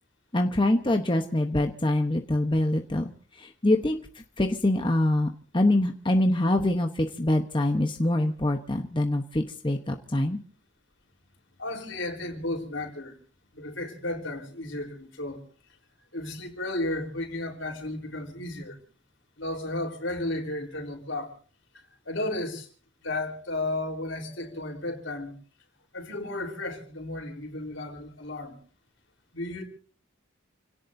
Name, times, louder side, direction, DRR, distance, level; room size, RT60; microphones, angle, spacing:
voice 1, 0.3-10.4, left 1 dB, 25° left, 1.0 m, -25 dB
voice 2, 11.6-13.2 13.5-15.4 16.1-18.8 19.4-21.4 21.7-22.7 23.0-25.3 25.9-28.6 29.3-29.6, left 2 dB, 70° left, 4.1 m, -33 dB
29.0 x 17.5 x 2.7 m
head